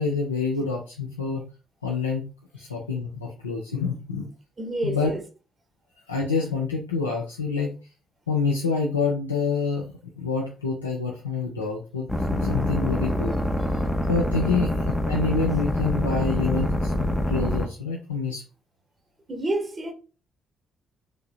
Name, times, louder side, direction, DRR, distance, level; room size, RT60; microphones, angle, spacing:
voice 1, 0.0-1.5 1.8-4.3 4.8-5.1 6.1-7.7 8.3-9.9 10.2-13.4 14.1-18.4, left 4 dB, 90° left, 0.3 m, -27 dB
voice 2, 4.6-5.2 14.4-14.7 19.3-19.9, right 1 dB, 30° right, 0.6 m, -29 dB
sound 1, 12.1-17.7, left 1 dB, 10° left, 0.5 m, -25 dB
3.0 x 2.6 x 2.3 m
figure-of-eight pair, 45°, 0 cm